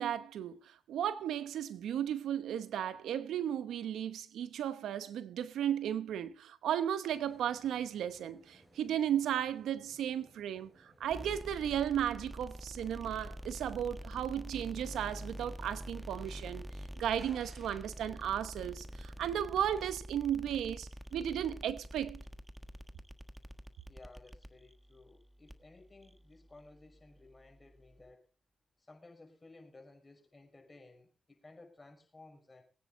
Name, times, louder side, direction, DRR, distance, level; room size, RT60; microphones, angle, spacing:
voice 1, 0.0-10.7 11.0-16.7 17.0-22.2, right 10 dB, 90° right, 0.9 m, -35 dB
sound 1, 7.1-19.8, right 1 dB, 25° right, 6.3 m, -62 dB
sound 2, 11.0-28.1, equal, 5° right, 1.3 m, -47 dB
voice 2, 23.9-28.3 28.8-32.6, left 2 dB, 25° left, 6.1 m, -57 dB
21.5 x 9.4 x 3.8 m
cardioid pair, 65°, 0 cm